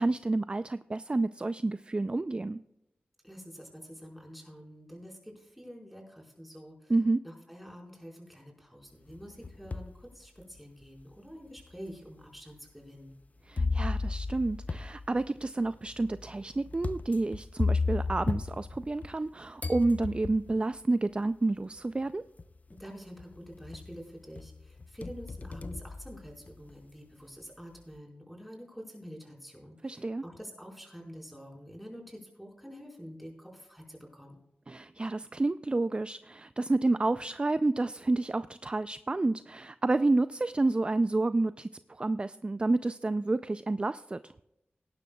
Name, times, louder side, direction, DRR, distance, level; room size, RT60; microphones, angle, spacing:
voice 1, 0.0-2.6 6.9-7.2 13.5-22.2 29.8-30.2 34.7-44.3, right 2 dB, 30° right, 13 dB, 0.3 m, -29 dB
voice 2, 3.2-6.9 7.2-13.2 22.7-34.4, equal, ahead, -1 dB, 4.5 m, -47 dB
sound 1, 9.1-10.0 10.6-10.7 11.6-11.7 13.6-19.3 19.6-20.6 21.8-21.9 22.4-22.8 23.2-24.0 24.4-26.7, left 3 dB, 45° left, 0.6 m, -34 dB
18.0 x 11.0 x 2.3 m, 0.86 s
cardioid pair, 60°, 4 cm